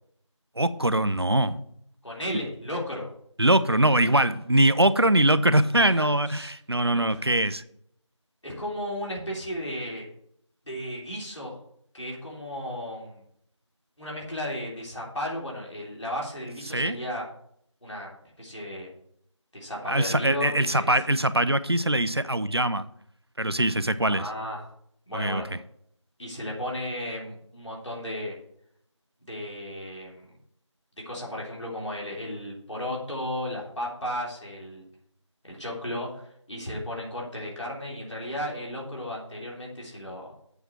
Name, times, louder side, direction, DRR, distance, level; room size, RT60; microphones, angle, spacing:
voice 1, 0.6-1.6 3.4-7.6 16.7-17.0 19.9-22.9 23.4-24.3 25.1-25.4, right 1 dB, 55° right, 14 dB, 0.5 m, -22 dB
voice 2, 2.0-3.1 5.8-6.5 6.9-7.2 8.4-10.1 10.6-11.6 11.9-13.2 14.0-17.2 17.8-18.9 19.5-20.9 24.1-24.6 25.1-25.5 26.2-28.3 29.2-30.2 31.0-34.8 35.4-40.3, left 1 dB, 65° left, -3 dB, 3.4 m, -34 dB
8.1 x 4.6 x 6.9 m, 0.69 s
figure-of-eight pair, 175°, 16 cm